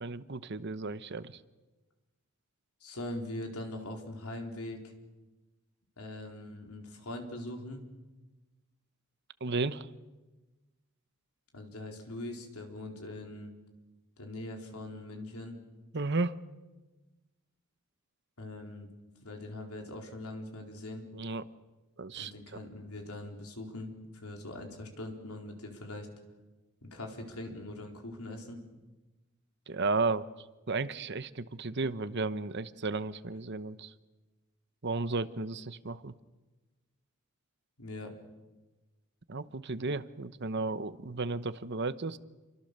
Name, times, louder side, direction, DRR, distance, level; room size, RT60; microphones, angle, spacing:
voice 1, 0.0-1.4 9.4-9.9 15.9-16.4 21.1-21.4 22.0-22.6 29.7-30.3 30.7-33.9 34.8-36.1 39.3-42.2, right 3 dB, 50° right, 13 dB, 0.9 m, -34 dB
voice 2, 2.8-4.8 6.0-7.8 11.5-13.5 14.2-15.6 18.4-18.9 19.2-21.1 22.2-26.1 26.8-28.6 37.8-38.2, left 1 dB, 85° left, 2 dB, 4.1 m, -42 dB
28.5 x 23.5 x 6.8 m, 1.2 s
head